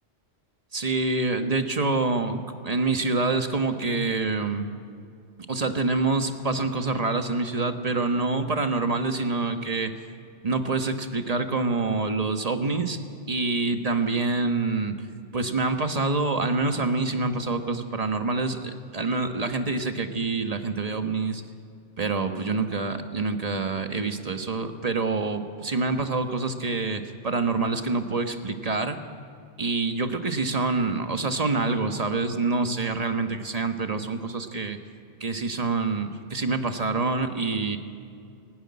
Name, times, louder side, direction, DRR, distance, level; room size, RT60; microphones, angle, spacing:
voice 1, 0.7-4.7 5.5-9.9 10.4-13.0 13.3-14.9 15.3-21.4 22.0-29.0 29.6-34.8 35.2-37.8, right 3 dB, 35° right, 6 dB, 1.4 m, -26 dB
18.5 x 16.5 x 9.6 m, 2.4 s
omnidirectional pair, 1.2 m